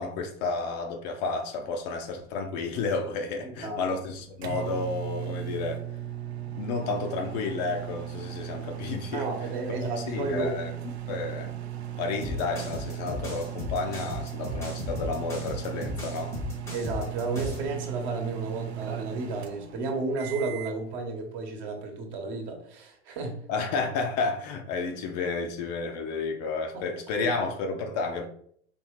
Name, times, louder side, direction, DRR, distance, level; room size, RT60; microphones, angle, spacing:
voice 1, 0.0-5.8 6.5-9.2 9.7-9.8 10.1-10.7 11.1-11.5 12.0-16.4 23.5-28.3, left 4 dB, 40° left, 0.6 m, -31 dB
voice 2, 3.4-3.8 9.1-10.6 16.7-23.4 26.7-26.8, right 3 dB, 40° right, 1.1 m, -32 dB
sound 1, 3.8-20.8, right 11 dB, 65° right, 0.6 m, -37 dB
sound 2, 12.2-17.7, left 3 dB, 10° left, 0.8 m, -36 dB
4.4 x 3.1 x 3.1 m
figure-of-eight pair, 90°, 34 cm